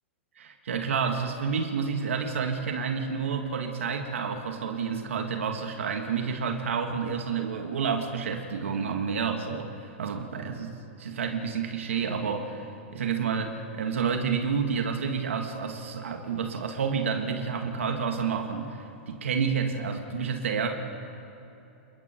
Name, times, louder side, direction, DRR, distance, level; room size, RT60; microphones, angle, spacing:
voice 1, 0.4-20.7, right 6 dB, 85° right, 3 dB, 2.1 m, -29 dB
28.5 x 22.0 x 4.6 m, 2.9 s
hypercardioid pair, 135°, 7 cm